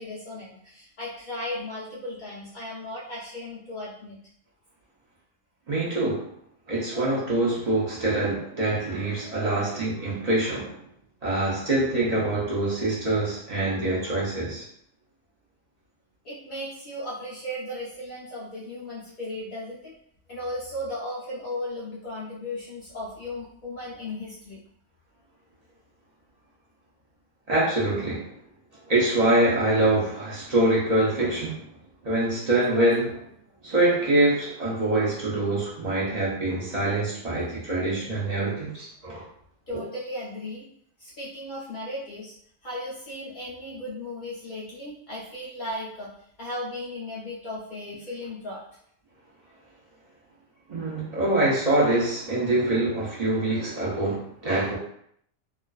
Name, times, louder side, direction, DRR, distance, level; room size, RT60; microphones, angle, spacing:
voice 1, 0.0-4.2 16.2-19.9 20.3-24.6 39.7-40.7 41.0-42.3 42.6-46.1 46.4-48.6, left 1 dB, 70° left, -7 dB, 0.4 m, -36 dB
voice 2, 5.7-6.3 6.7-10.8 11.2-14.6 27.5-28.3 28.9-31.6 32.0-33.2 33.6-39.2 50.7-54.8, right 2 dB, 50° right, -7 dB, 0.5 m, -24 dB
2.4 x 2.3 x 2.3 m, 0.68 s
omnidirectional pair, 1.4 m